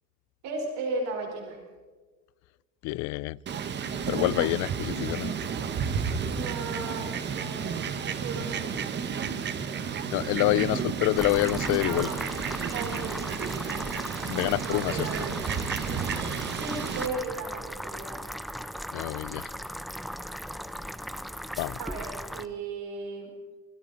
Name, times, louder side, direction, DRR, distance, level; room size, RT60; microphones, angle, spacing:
voice 1, 0.4-1.6 6.3-8.8 11.9-12.2 12.7-13.6 14.4-15.4 16.5-18.2 21.8-23.3, right 3 dB, 70° right, 1 dB, 4.6 m, -36 dB
voice 2, 2.8-3.4 4.1-5.3 10.1-12.1 14.2-15.1 18.9-19.5 21.6-21.8, left 19 dB, 75° left, 22 dB, 0.5 m, -27 dB
Fowl, 3.5-17.1, right 6 dB, 35° right, 1.5 m, -32 dB
sound 1, 11.2-22.5, equal, ahead, 0.7 m, -38 dB
28.5 x 23.0 x 4.2 m, 1.4 s
cardioid pair, 150°, 29 cm